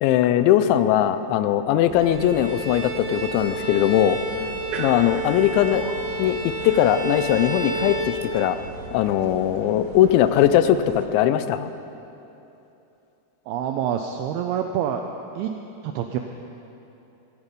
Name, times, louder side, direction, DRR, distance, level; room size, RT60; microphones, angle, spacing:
voice 1, 0.0-4.2 4.8-5.8 6.2-6.4 6.6-8.6 8.9-11.7, left 11 dB, 85° left, 11 dB, 3.0 m, -20 dB
sound 1, 1.9-11.1, right 4 dB, 75° right, 2.3 m, -39 dB
Bowed string instrument, 2.0-8.8, right 2 dB, 50° right, 3.3 m, -31 dB
voice 2, 13.5-15.0 15.4-15.6 15.8-16.2, right 9 dB, 90° right, 4 dB, 2.2 m, -26 dB
17.0 x 14.5 x 5.3 m, 2.9 s
omnidirectional pair, 5.2 m